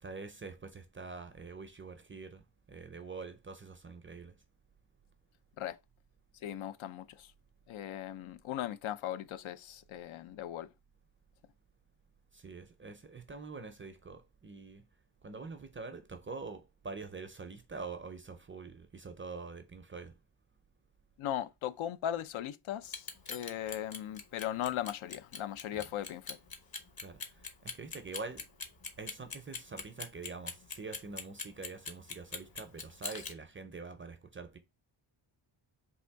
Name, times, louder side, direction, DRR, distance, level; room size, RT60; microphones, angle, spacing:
voice 1, 0.0-4.3 12.3-14.8 15.2-20.1 25.7-25.8 27.0-28.4 29.0-34.6, right 4 dB, 30° right, 0.4 m, -45 dB
voice 2, 6.3-7.3 7.7-10.7 21.2-26.4, left 11 dB, 80° left, 0.5 m, -38 dB
Clock, 22.8-33.3, left 5 dB, 50° left, 0.8 m, -41 dB
3.5 x 2.6 x 4.4 m
wide cardioid pair, 155°, 48 cm